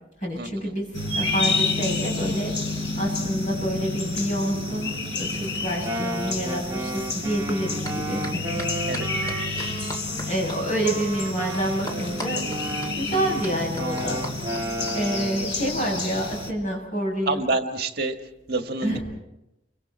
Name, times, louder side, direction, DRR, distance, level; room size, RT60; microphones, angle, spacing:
voice 1, 0.2-2.5 3.0-8.6 10.3-12.4 12.9-14.2 14.5-17.4 18.8-19.0, equal, 40° left, 0 dB, 8.0 m, -28 dB
sound 1, 0.9-16.5, left 3 dB, 70° left, 3.9 m, -29 dB
Wind instrument woodwind instrument, 5.6-10.3 10.8-15.5, right 1 dB, 20° right, 1.9 m, -33 dB
sound 2, 7.8-8.0 8.2-15.0, equal, 20° left, 2.7 m, -37 dB
voice 2, 17.3-18.2 18.5-19.0, right 3 dB, 55° right, 5 dB, 1.6 m, -27 dB
30.0 x 25.0 x 4.4 m, 0.91 s
head